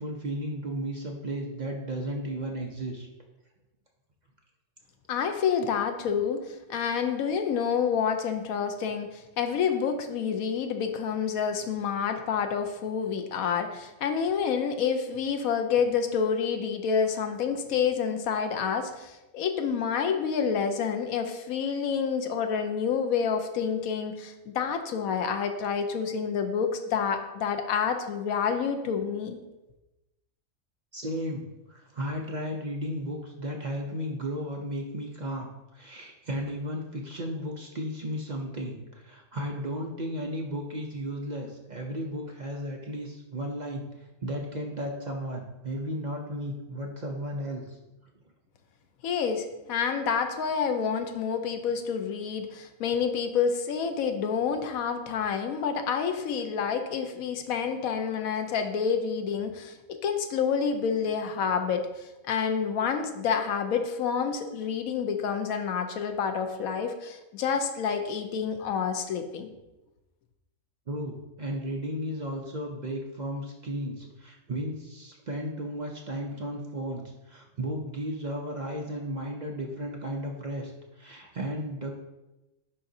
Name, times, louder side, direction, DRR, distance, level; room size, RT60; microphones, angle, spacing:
voice 1, 0.0-3.1 30.9-43.8 44.2-47.8 70.9-82.0, equal, 50° right, 0 dB, 0.5 m, -34 dB
voice 2, 5.1-29.4 49.0-69.5, left 6 dB, 85° left, 6 dB, 1.1 m, -28 dB
9.8 x 3.8 x 2.7 m, 0.99 s
omnidirectional pair, 1.5 m